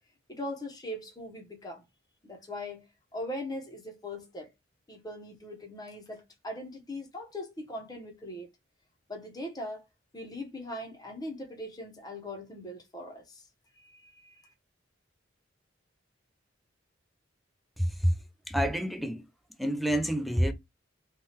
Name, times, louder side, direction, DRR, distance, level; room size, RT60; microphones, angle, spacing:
voice 1, 0.3-1.8 2.2-2.9 3.1-4.5 4.9-8.5 9.1-9.8 10.1-13.4 13.8-14.5, left 1 dB, 20° left, 0.7 m, -40 dB
voice 2, 17.8-18.1 18.5-19.2 19.6-20.5, equal, ahead, 0.3 m, -27 dB
3.1 x 2.3 x 2.7 m
head